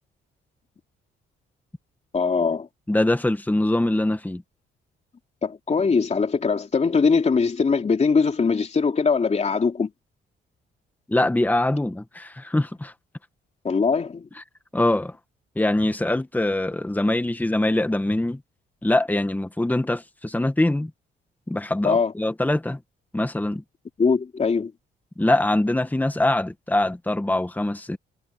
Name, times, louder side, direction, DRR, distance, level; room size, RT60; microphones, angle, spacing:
voice 1, 2.1-2.7 5.4-9.9 13.6-14.2 21.8-22.1 24.0-24.7, left 5 dB, 35° left, 3.1 m, -21 dB
voice 2, 2.9-4.4 11.1-12.9 14.7-15.1 15.6-18.4 18.8-20.9 21.5-22.8 23.1-23.6 25.2-28.0, left 1 dB, 10° left, 1.9 m, -23 dB
cardioid pair, 90°, 20 cm